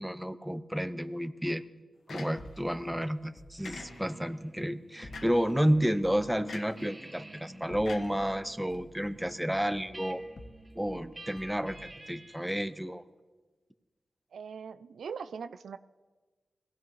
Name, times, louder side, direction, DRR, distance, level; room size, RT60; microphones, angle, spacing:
voice 1, 0.0-1.6 2.1-10.2 10.8-13.0, equal, 5° right, 12 dB, 0.7 m, -31 dB
sound 1, 2.1-2.7 3.6-4.3 5.1-5.5 6.5-6.9 7.8-8.7, left 4 dB, 75° left, 1.0 m, -46 dB
sound 2, 2.4-3.9 5.0-6.3 7.5-8.4 8.7-11.0 11.4-12.0, left 1 dB, 50° left, 1.0 m, -51 dB
sound 3, 3.6-6.1 6.4-12.5, right 2 dB, 30° right, 2.3 m, -51 dB
voice 2, 14.3-15.8, right 6 dB, 85° right, 12 dB, 0.4 m, -41 dB
21.0 x 15.5 x 3.1 m, 1.4 s
cardioid pair, 70°, 0 cm